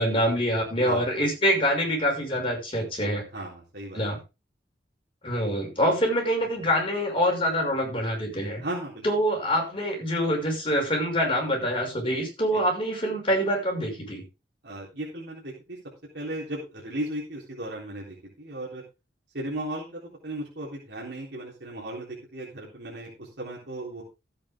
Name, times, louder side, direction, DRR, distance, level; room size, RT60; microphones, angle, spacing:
voice 1, 0.0-3.2 3.9-4.2 5.2-8.6 9.0-14.2, equal, 30° left, 1 dB, 5.7 m, -25 dB
voice 2, 3.3-4.0 8.6-9.0 12.5-12.6 14.6-15.8 16.1-18.8 19.3-24.0, right 1 dB, 70° right, -3 dB, 3.7 m, -36 dB
14.0 x 8.5 x 3.6 m, 0.28 s
head